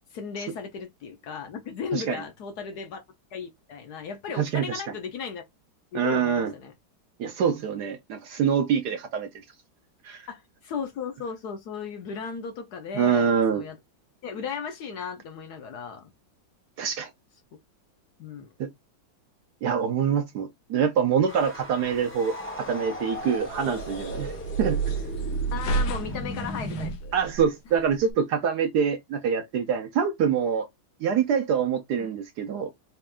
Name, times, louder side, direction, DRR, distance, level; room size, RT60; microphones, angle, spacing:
voice 1, 0.1-3.0 3.3-5.4 5.9-6.7 10.3-13.8 14.2-16.1 18.2-18.5 25.5-27.1 32.0-32.1, left 6 dB, 65° left, 1.1 m, -36 dB
voice 2, 4.4-4.8 5.9-6.5 7.2-9.3 10.0-10.3 12.9-13.6 16.8-17.1 18.6-18.7 19.6-24.3 24.6-24.8 27.1-30.7 31.0-32.7, right 7 dB, 70° right, 1.0 m, -25 dB
sound 1, 21.3-26.9, left 1 dB, 10° left, 0.5 m, -37 dB
sound 2, 23.1-28.1, right 4 dB, 90° left, 1.6 m, -31 dB
4.3 x 2.5 x 3.4 m
omnidirectional pair, 2.2 m